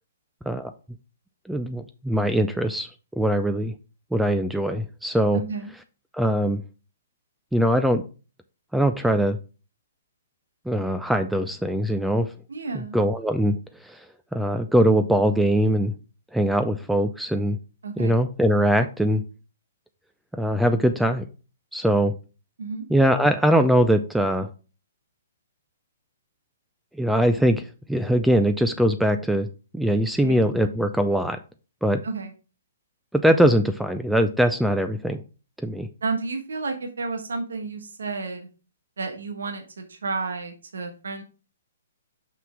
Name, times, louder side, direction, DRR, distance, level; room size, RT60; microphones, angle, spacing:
voice 1, 1.5-2.9 3.2-3.7 4.1-5.4 6.1-6.6 7.5-8.0 8.7-9.4 10.7-12.3 12.9-13.6 13.8-14.0 14.3-15.9 16.3-17.6 18.0-19.2 20.4-21.2 21.7-22.1 22.9-24.5 27.0-29.5 29.7-31.4 31.8-32.0 33.1-35.2 35.6-35.9, equal, ahead, 8 dB, 0.5 m, -21 dB
voice 2, 5.3-5.7 12.5-13.0 17.8-18.2 22.6-22.8 30.2-30.4 32.0-32.3 36.0-38.5 39.0-41.2, right 4 dB, 80° right, 5 dB, 1.3 m, -31 dB
5.9 x 5.8 x 3.6 m, 0.33 s
hypercardioid pair, 130°, 0 cm